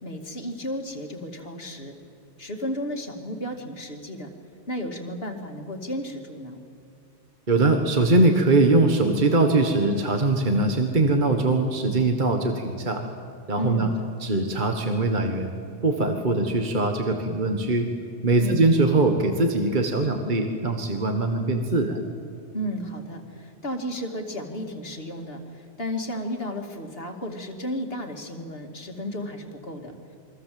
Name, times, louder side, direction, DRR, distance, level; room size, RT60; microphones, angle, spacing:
voice 1, 0.0-1.9 2.4-4.3 4.7-6.6 13.6-13.9 14.2-14.3 18.4-18.6 22.5-30.2, equal, 50° left, 3 dB, 2.7 m, -33 dB
voice 2, 7.5-13.0 13.5-13.9 14.2-17.9 18.2-22.0, right 2 dB, 40° right, 4 dB, 1.7 m, -22 dB
28.5 x 23.0 x 7.7 m, 2.6 s
omnidirectional pair, 1.2 m